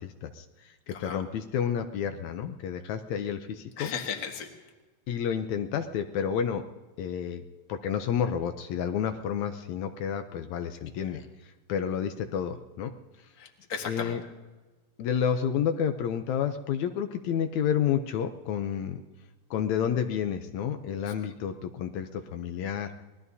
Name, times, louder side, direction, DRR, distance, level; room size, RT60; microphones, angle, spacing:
voice 1, 0.0-3.9 5.1-6.6 7.0-7.4 7.7-12.9 13.9-14.2 15.0-19.0 19.5-22.9, left 8 dB, 80° left, 7 dB, 2.0 m, -30 dB
voice 2, 0.9-1.2 3.8-4.5 11.1-11.2 13.4-14.2 21.0-21.1, left 6 dB, 40° left, 2 dB, 1.7 m, -36 dB
26.5 x 20.0 x 2.7 m, 1.2 s
omnidirectional pair, 3.4 m